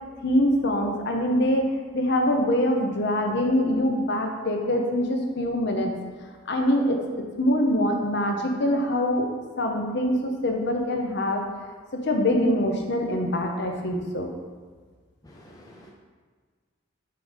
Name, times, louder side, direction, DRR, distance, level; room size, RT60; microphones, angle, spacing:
voice 1, 0.2-1.7 1.9-6.0 6.5-7.0 7.4-9.3 9.6-11.4 11.9-14.3, left 1 dB, 55° left, 2 dB, 0.8 m, -24 dB
voice 2, 15.2-15.9, left 1 dB, 15° left, -2 dB, 0.5 m, -49 dB
5.9 x 3.6 x 5.0 m, 1.5 s
head